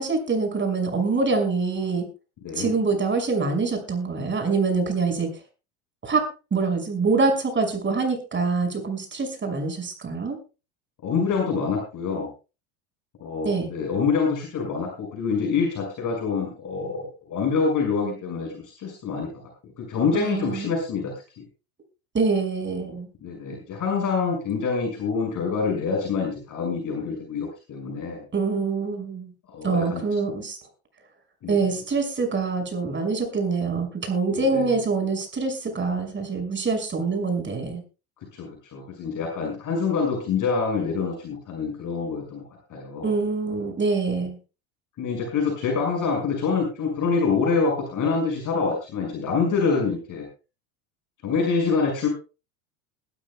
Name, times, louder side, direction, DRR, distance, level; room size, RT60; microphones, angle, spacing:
voice 1, 0.0-2.0 2.6-5.3 6.0-10.4 13.4-13.7 20.1-20.7 22.1-23.1 28.3-29.3 29.6-30.6 31.5-37.8 43.0-44.4, right 4 dB, 25° right, 5 dB, 6.0 m, -25 dB
voice 2, 2.4-2.7 11.0-12.3 13.2-19.4 19.8-21.4 23.2-28.3 29.5-30.0 31.4-31.6 34.4-34.8 38.3-42.4 42.7-43.1 45.0-50.2 51.2-52.1, left 5 dB, 45° left, 0 dB, 6.1 m, -26 dB
21.0 x 13.0 x 2.3 m, 0.32 s
hypercardioid pair, 85°, 43 cm